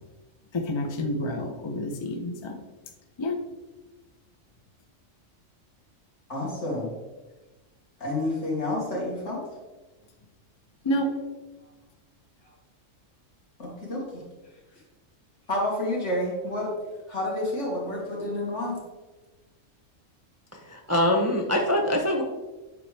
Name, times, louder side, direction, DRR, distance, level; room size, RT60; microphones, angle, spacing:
voice 1, 0.5-2.6 3.2-3.4 10.8-11.1, left 1 dB, 30° left, 4 dB, 0.5 m, -28 dB
voice 2, 6.3-6.9 8.0-9.4 13.6-14.2 15.5-16.7 17.1-18.8, left 1 dB, 65° left, -4 dB, 2.4 m, -29 dB
voice 3, 20.7-22.2, left 1 dB, 15° right, 1 dB, 0.6 m, -23 dB
8.5 x 5.0 x 3.3 m, 1.2 s
omnidirectional pair, 1.3 m